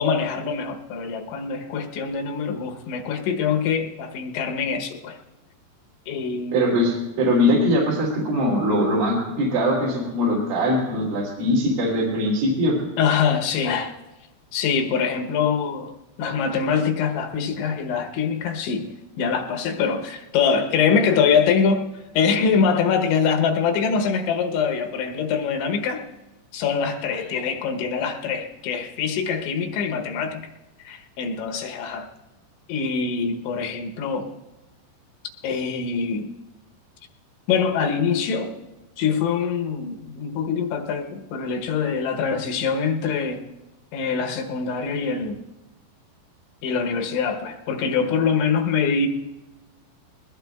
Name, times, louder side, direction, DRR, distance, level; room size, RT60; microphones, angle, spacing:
voice 1, 0.0-5.2 6.1-6.9 13.0-13.9 14.5-21.9 22.1-26.0 26.5-30.5 30.8-32.1 32.7-34.3 35.4-36.3 37.5-38.7 39.0-43.4 43.9-45.4 46.6-49.1, left 6 dB, 80° left, 3 dB, 3.2 m, -24 dB
voice 2, 6.5-12.8, equal, 85° right, -6 dB, 5.2 m, -21 dB
21.0 x 21.0 x 2.3 m, 1.0 s
omnidirectional pair, 5.2 m